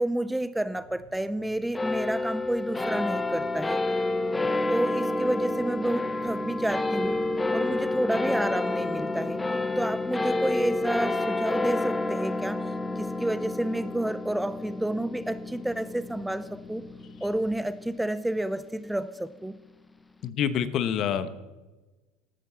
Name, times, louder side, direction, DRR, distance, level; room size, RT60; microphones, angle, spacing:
voice 1, 0.0-3.8 4.7-7.2 7.5-9.4 9.8-16.8 17.2-19.6, right 1 dB, 5° right, 14 dB, 0.5 m, -30 dB
sound 1, 0.8-17.6, left 3 dB, 45° right, 3.2 m, -55 dB
sound 2, 1.7-18.5, left 2 dB, 10° left, 0.9 m, -29 dB
voice 2, 20.2-21.5, left 8 dB, 45° left, 13 dB, 1.2 m, -27 dB
13.0 x 13.0 x 7.0 m, 1.2 s
supercardioid pair, 125°, 0 cm